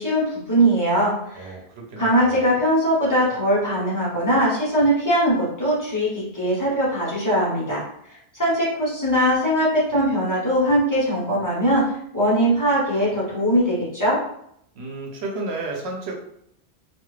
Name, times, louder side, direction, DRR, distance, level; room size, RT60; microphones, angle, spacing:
voice 1, 0.0-1.5 2.0-7.8 8.3-14.2, equal, 20° left, -9 dB, 1.1 m, -21 dB
voice 2, 1.3-2.6 14.8-16.2, right 2 dB, 85° right, 0 dB, 0.9 m, -32 dB
2.5 x 2.4 x 3.2 m, 0.72 s
omnidirectional pair, 1.0 m